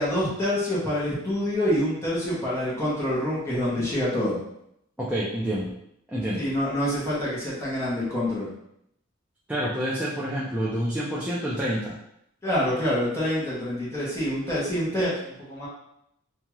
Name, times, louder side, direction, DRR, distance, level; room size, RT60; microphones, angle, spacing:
voice 1, 0.0-4.4 6.4-8.5 12.4-15.7, left 1 dB, 15° left, -8 dB, 0.9 m, -26 dB
voice 2, 5.0-5.7 6.1-6.5 9.5-11.9, equal, 5° right, -7 dB, 0.3 m, -28 dB
2.7 x 2.3 x 3.0 m, 0.77 s
head